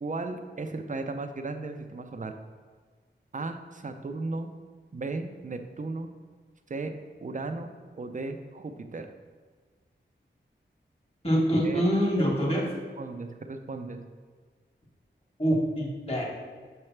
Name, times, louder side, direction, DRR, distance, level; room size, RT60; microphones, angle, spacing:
voice 1, 0.0-2.3 3.3-4.5 4.9-6.1 6.7-6.9 7.2-7.7 8.0-9.1 11.6-11.8 13.0-14.0, right 3 dB, 40° right, 6 dB, 0.5 m, -35 dB
voice 2, 11.2-12.7 15.4-16.3, equal, 30° left, -3 dB, 1.7 m, -25 dB
6.6 x 3.3 x 5.8 m, 1.6 s
wide cardioid pair, 85°, 20 cm